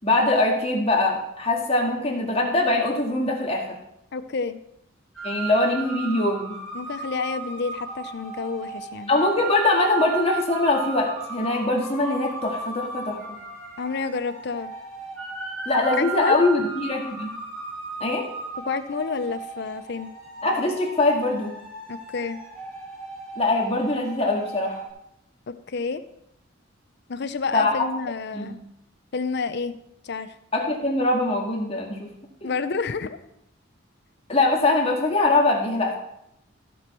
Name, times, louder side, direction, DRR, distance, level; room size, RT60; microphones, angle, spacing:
voice 1, 0.0-3.8 5.2-6.6 9.1-13.2 15.7-17.3 18.0-18.3 20.4-21.5 23.4-24.8 27.5-27.7 28.3-28.5 30.5-32.1 32.4-32.5 34.3-36.0, left 2 dB, 30° left, -1 dB, 2.0 m, -22 dB
voice 2, 4.1-4.6 6.7-9.2 13.8-14.7 16.0-16.4 18.7-20.1 21.9-22.4 25.5-26.0 27.1-28.6 29.1-29.7 30.0-30.3 32.4-33.2, left 4 dB, 60° left, 10 dB, 0.6 m, -29 dB
sound 1, 5.1-24.9, right 3 dB, ahead, 3.4 m, -36 dB
14.5 x 6.1 x 4.5 m, 0.79 s
head